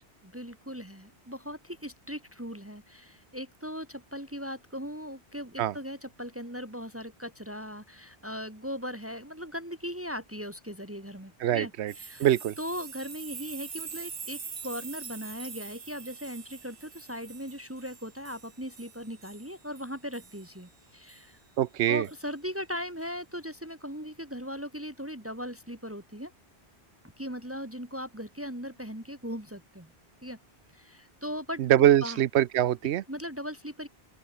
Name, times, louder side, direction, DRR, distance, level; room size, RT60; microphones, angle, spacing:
voice 1, 0.3-12.3 12.6-21.4 21.9-26.3 27.2-29.9 30.2-30.4 30.7-32.2 33.1-33.9, equal, 10° right, 2.3 m, -39 dB
voice 2, 11.4-11.9 12.2-12.5 21.6-22.1 31.6-33.0, right 12 dB, 90° right, 0.9 m, -23 dB
sound 1, 11.9-20.5 21.1-21.2 22.0-22.2, right 5 dB, 35° right, 0.8 m, -44 dB
open air
omnidirectional pair, 1.1 m